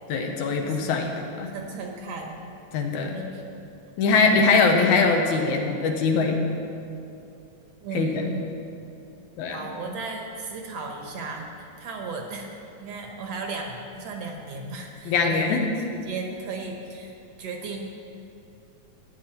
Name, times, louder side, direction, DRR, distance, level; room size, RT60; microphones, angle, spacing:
voice 1, 0.1-1.5 2.7-3.2 4.0-6.4 7.9-8.3 9.4-9.6 15.1-15.6, left 4 dB, 80° left, 3 dB, 2.4 m, -22 dB
voice 2, 0.6-1.0 1.5-2.5 3.0-3.4 7.8-8.5 9.5-12.5 12.8-15.6 16.0-17.1 17.4-17.8, right 3 dB, 65° right, 2 dB, 1.9 m, -35 dB
14.5 x 9.4 x 4.5 m, 2.7 s
omnidirectional pair, 3.5 m